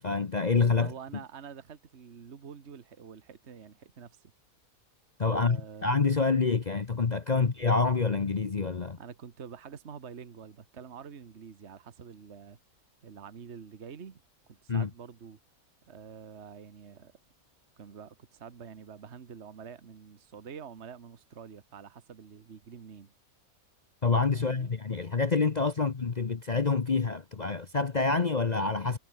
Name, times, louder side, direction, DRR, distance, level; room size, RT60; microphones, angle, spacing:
voice 1, 0.0-0.9 5.2-9.0 14.7-14.9 24.0-29.0, left 4 dB, 35° left, 0.9 m, -27 dB
voice 2, 0.7-4.3 5.3-6.0 7.3-7.5 9.0-12.6 13.0-14.2 14.5-15.4 15.9-17.1 17.8-23.1 24.3-24.7 25.8-25.9, right 7 dB, 50° right, 1.6 m, -47 dB
omnidirectional pair, 1.5 m